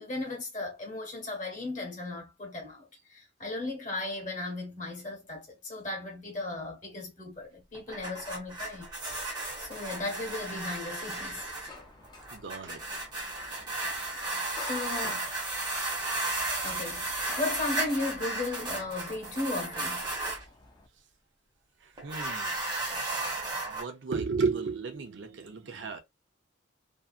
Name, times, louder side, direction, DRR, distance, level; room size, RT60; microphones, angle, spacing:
voice 1, 0.0-8.9 9.6-11.4 14.5-15.3 16.6-20.1, left 2 dB, 40° left, 1.1 m, -36 dB
sound 1, 7.7-20.4 22.0-23.8, right 2 dB, 20° right, 0.9 m, -34 dB
sound 2, 11.1-20.9, left 3 dB, 20° left, 0.4 m, -50 dB
voice 2, 12.3-12.8 22.0-22.6 23.7-26.0, right 4 dB, 65° right, 0.5 m, -33 dB
2.7 x 2.3 x 2.4 m
head